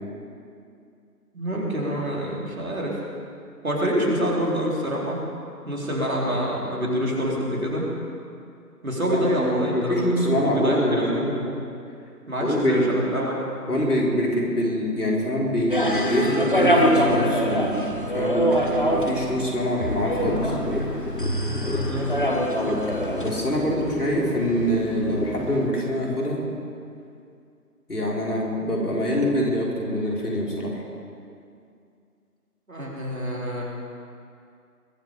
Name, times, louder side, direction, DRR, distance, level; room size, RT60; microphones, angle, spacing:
voice 1, 1.3-3.0 3.6-5.2 5.7-7.9 8.8-10.2 10.4-11.4 12.3-13.5 21.6-22.1 23.7-23.8 32.7-33.6, equal, 60° right, -4 dB, 4.1 m, -26 dB
voice 2, 9.4-11.5 12.4-12.9 13.7-18.5 18.8-20.5 23.2-26.4 27.9-30.8, equal, 70° left, -3 dB, 4.2 m, -24 dB
sound 1, 15.7-23.4, equal, 30° left, 1.2 m, -24 dB
sound 2, 19.8-25.7, left 2 dB, 85° left, 1.9 m, -31 dB
21.5 x 7.4 x 7.2 m, 2.4 s
figure-of-eight pair, 165°, 48 cm